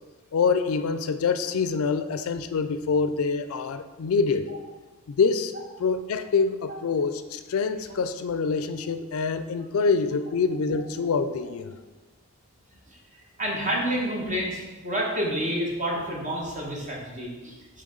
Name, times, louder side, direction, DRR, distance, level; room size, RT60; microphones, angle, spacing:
voice 1, 0.3-4.5 5.1-11.7, left 5 dB, 75° left, 10 dB, 0.4 m, -25 dB
voice 2, 13.4-17.6, equal, 35° right, -2 dB, 1.2 m, -29 dB
7.8 x 3.3 x 3.8 m, 1.2 s
head